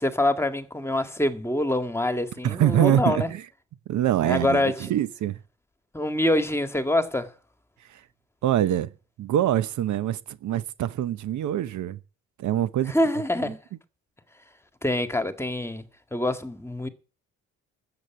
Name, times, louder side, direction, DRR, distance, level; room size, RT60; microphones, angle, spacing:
voice 1, 0.0-3.3 4.2-4.9 5.9-7.3 12.9-13.6 14.8-15.8 16.1-16.9, left 1 dB, 10° left, 1.9 m, -25 dB
voice 2, 2.4-3.5 3.9-5.4 7.9-8.0 8.4-8.9 9.2-12.0 12.4-12.9 13.4-13.5, right 11 dB, 75° right, 0.9 m, -24 dB
12.5 x 8.1 x 9.0 m
cardioid pair, 90°, 30 cm